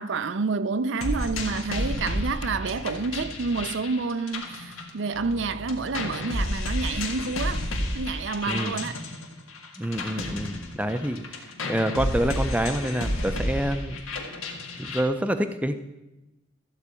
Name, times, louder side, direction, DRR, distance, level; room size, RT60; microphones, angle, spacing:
voice 1, 0.0-7.7 7.9-9.0, right 4 dB, 65° right, 0.5 m, -29 dB
sound 1, 1.0-5.4 5.7-15.0, left 1 dB, 90° left, 1.8 m, -31 dB
sound 2, 1.0-4.0 5.1-8.4, right 1 dB, 50° left, 1.5 m, -43 dB
voice 2, 8.5-8.9 9.8-14.0 14.8-15.7, right 1 dB, 5° right, 0.5 m, -27 dB
14.0 x 4.7 x 8.3 m
head